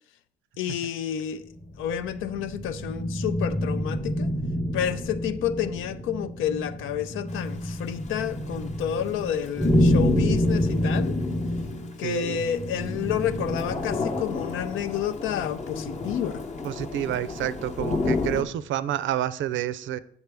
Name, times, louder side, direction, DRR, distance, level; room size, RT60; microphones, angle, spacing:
voice 1, 0.6-1.5 1.8-4.3 4.7-11.2 12.0-16.4, left 9 dB, 85° left, 0.6 m, -30 dB
sound 1, 1.5-14.2, equal, 10° left, 0.7 m, -27 dB
Thunder / Rain, 7.3-18.4, left 3 dB, 35° left, 0.8 m, -33 dB
voice 2, 12.0-12.4 16.6-20.0, right 12 dB, 75° right, 0.5 m, -29 dB
8.0 x 6.9 x 3.4 m
cardioid pair, 90°, 20 cm